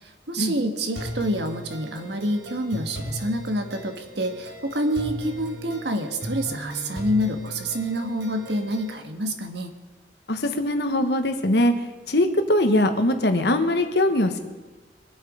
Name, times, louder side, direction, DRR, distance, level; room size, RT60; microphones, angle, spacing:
voice 1, 0.0-9.7, equal, 70° right, 6 dB, 1.5 m, -27 dB
sound 1, 0.9-8.9, right 1 dB, 90° right, 3.7 m, -37 dB
voice 2, 10.3-11.7 12.1-14.4, left 1 dB, 65° left, 7 dB, 1.3 m, -21 dB
23.0 x 8.0 x 5.0 m, 1.2 s
head